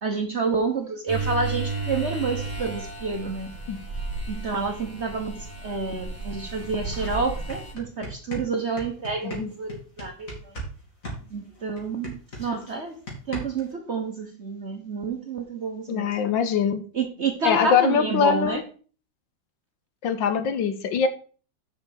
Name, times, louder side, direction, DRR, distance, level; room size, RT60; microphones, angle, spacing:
voice 1, 0.0-3.5 4.3-10.5 11.3-13.0 13.3-16.1 16.9-18.6, right 4 dB, 45° right, 1.1 m, -29 dB
sound 1, 1.1-7.7, right 3 dB, 10° right, 2.7 m, -33 dB
sound 2, 6.5-6.6 6.9-10.7 11.0-13.7, equal, 40° left, 3.2 m, -37 dB
voice 2, 15.9-16.8 17.4-18.6 20.0-21.1, left 7 dB, 70° left, 1.6 m, -23 dB
6.8 x 5.7 x 6.4 m
omnidirectional pair, 2.2 m